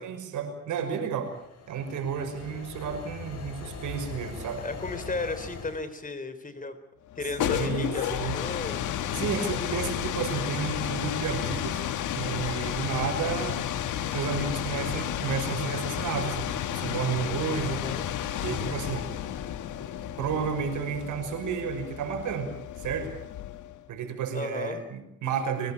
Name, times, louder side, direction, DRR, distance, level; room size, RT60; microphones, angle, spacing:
voice 1, 0.0-1.3 1.7-4.6 7.4-8.4 9.1-11.8 12.1-13.6 14.1-17.8 18.4-19.1 20.2-22.5 22.8-23.1 23.9-25.7, right 6 dB, 80° right, 7 dB, 5.9 m, -32 dB
sound 1, 1.1-5.8, left 4 dB, 55° left, 7.1 m, -41 dB
voice 2, 4.6-6.8 7.2-8.8 17.7-18.1 24.3-24.8, left 3 dB, 25° left, 10 dB, 3.9 m, -35 dB
sound 2, 7.1-23.8, left 10 dB, 80° left, 1.8 m, -32 dB
24.0 x 20.0 x 8.8 m, 0.80 s
cardioid pair, 90°, 30 cm